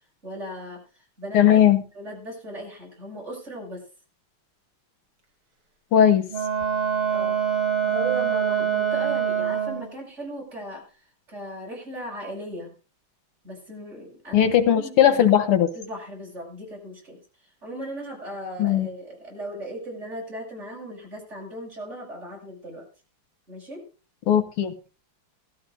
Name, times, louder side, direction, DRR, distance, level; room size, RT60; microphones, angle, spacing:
voice 1, 0.2-0.8 1.2-1.6 1.9-3.8 7.1-7.4 7.8-10.8 11.3-12.7 13.4-15.3 15.7-17.2 17.6-22.9 23.5-23.9, right 1 dB, 30° right, -1 dB, 6.8 m, -37 dB
voice 2, 1.3-1.8 5.9-6.3 14.3-15.7 18.6-18.9 24.3-24.7, left 10 dB, 90° left, 8 dB, 2.2 m, -18 dB
Wind instrument woodwind instrument, 6.3-9.9, right 8 dB, 75° right, 4.7 m, -25 dB
18.0 x 13.5 x 2.6 m, 0.34 s
omnidirectional pair, 2.4 m